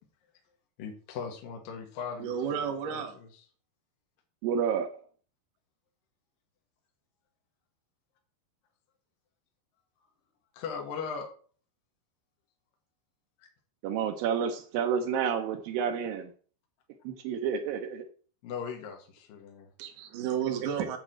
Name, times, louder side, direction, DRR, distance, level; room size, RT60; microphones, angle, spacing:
voice 1, 0.8-3.0 10.5-11.3 18.4-19.7, left 6 dB, 60° left, 2 dB, 2.6 m, -39 dB
voice 2, 2.2-3.2 19.8-21.0, right 8 dB, 55° right, 3 dB, 2.7 m, -32 dB
voice 3, 4.4-5.0 13.8-16.3 17.0-18.1 20.8-20.9, right 7 dB, 85° right, 6 dB, 2.0 m, -30 dB
8.9 x 4.8 x 7.6 m, 0.42 s
omnidirectional pair, 5.3 m